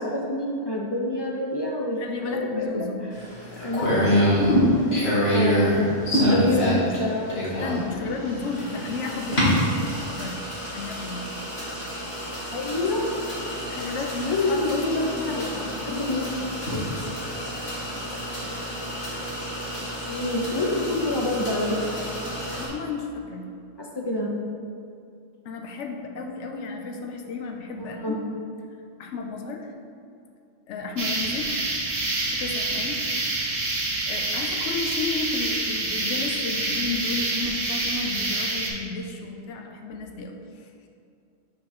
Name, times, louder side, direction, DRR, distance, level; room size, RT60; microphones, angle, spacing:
voice 1, 0.0-2.0 2.3-2.9 3.6-4.2 5.3-5.8 6.2-7.3 12.5-13.1 13.9-14.0 14.3-15.7 16.0-16.3 16.7-16.9 20.0-22.0 23.8-24.3 28.0-28.2, left 2 dB, 40° left, -2 dB, 0.4 m, -27 dB
voice 2, 2.0-3.1 3.4-3.7 6.2-7.1 7.5-9.7 10.1-10.5 10.7-11.4 13.7-16.9 18.0-18.2 22.6-23.6 25.4-28.2 29.0-29.7 30.7-31.6 32.3-33.0 34.1-40.7, left 4 dB, 85° left, 3 dB, 0.9 m, -33 dB
sound 1, 3.1-22.7, equal, 65° left, 1.9 m, -27 dB
sound 2, 31.0-38.7, right 2 dB, 55° right, 1.1 m, -27 dB
4.9 x 3.7 x 5.7 m, 2.5 s
omnidirectional pair, 1.2 m